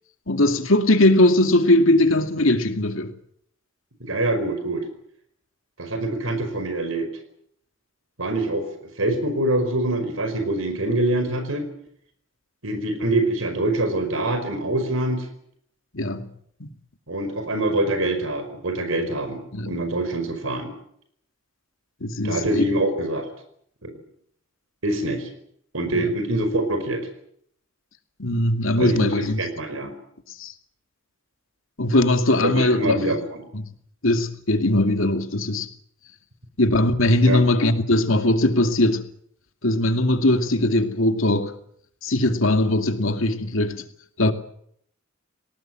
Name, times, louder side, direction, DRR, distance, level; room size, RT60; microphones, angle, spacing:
voice 1, 0.3-3.1 15.9-16.3 16.6-16.7 19.5-19.8 22.0-22.6 25.9-26.1 28.2-29.4 30.4-30.5 31.8-33.0 33.5-33.7 34.0-35.7 36.6-39.1 39.6-41.5 42.0-43.8 44.2-44.3, left 1 dB, 75° left, 2.5 m, -20 dB
voice 2, 4.0-4.8 5.8-7.1 8.2-8.7 9.0-11.7 12.6-15.3 17.1-20.7 22.2-23.2 23.8-23.9 24.8-25.3 25.7-27.1 28.8-29.1 29.4-29.9 32.4-33.4 37.2-37.4, right 1 dB, 90° right, 5.1 m, -24 dB
29.5 x 18.5 x 7.7 m
head